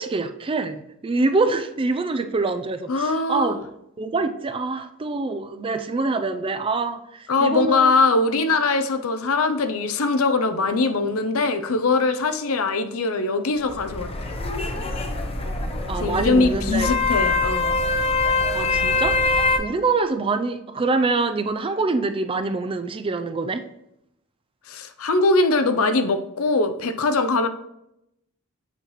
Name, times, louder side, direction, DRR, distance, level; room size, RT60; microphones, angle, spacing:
voice 1, 0.0-3.7 4.0-7.9 15.9-16.9 18.5-23.6, right 3 dB, 25° right, 9 dB, 0.4 m, -25 dB
voice 2, 2.9-3.6 7.3-14.3 16.0-17.8 24.7-27.5, left 3 dB, 80° left, 9 dB, 0.6 m, -22 dB
sound 1, 13.6-19.6, left 3 dB, 30° left, 0.7 m, -24 dB
8.0 x 5.6 x 3.1 m, 0.82 s
head